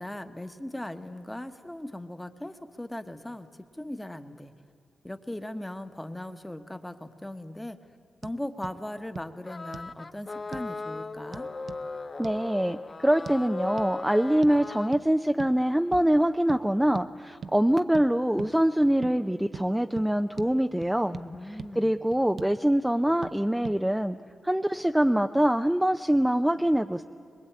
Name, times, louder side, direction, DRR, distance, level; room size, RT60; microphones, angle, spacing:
voice 1, 0.0-4.5 5.0-7.8 8.2-11.5 21.1-21.9, left 1 dB, 10° left, 9 dB, 1.2 m, -38 dB
sound 1, 8.2-8.4 8.6-8.8 9.2-9.3 9.7-9.9 10.5-10.7 11.3-11.8 12.2-12.4 13.3-13.4 13.8-13.9 14.4-14.6 14.9-15.1 15.4-15.6 15.9-16.1 16.5-16.6 16.9-17.1 17.4-17.6 17.9-18.1 18.4-18.5 19.0-19.2 19.5-19.7 20.0-20.1 20.4-20.5 20.8-21.3 21.6-21.7 22.1-22.6 23.2-23.4 23.6-23.8, right 5 dB, 60° right, 0.6 m, -40 dB
sound 2, 9.5-14.9, left 3 dB, 35° left, 0.6 m, -38 dB
voice 2, 12.2-21.2 21.8-24.2 24.4-27.0, right 1 dB, 5° right, 7 dB, 0.5 m, -24 dB
23.0 x 21.0 x 8.8 m, 2.3 s
cardioid pair, 85°, 0 cm